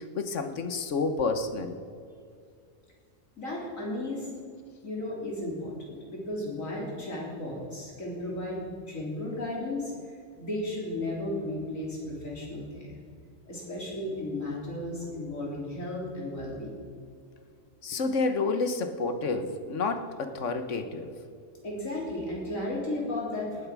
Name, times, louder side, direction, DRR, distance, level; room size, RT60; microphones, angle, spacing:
voice 1, 0.0-1.8 17.8-21.1, left 3 dB, 70° left, 8 dB, 1.4 m, -29 dB
voice 2, 3.4-4.3 4.8-9.9 10.4-13.0 13.5-16.8 21.6-23.7, left 1 dB, 85° left, -3 dB, 4.1 m, -34 dB
18.5 x 8.6 x 6.1 m, 2.3 s
omnidirectional pair, 1.3 m